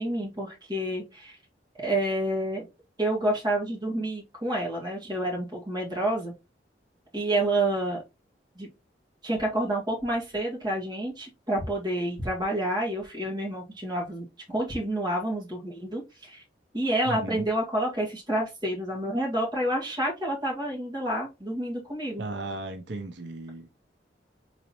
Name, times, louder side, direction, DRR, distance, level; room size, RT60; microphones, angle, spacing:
voice 1, 0.0-1.4 1.8-2.7 3.0-6.3 7.1-8.0 8.6-8.7 9.2-14.3 14.5-16.4 16.7-22.2, right 1 dB, 25° right, 2.2 m, -29 dB
voice 2, 17.1-17.4 22.2-23.7, right 2 dB, 85° right, 0.7 m, -35 dB
4.1 x 4.0 x 3.0 m
head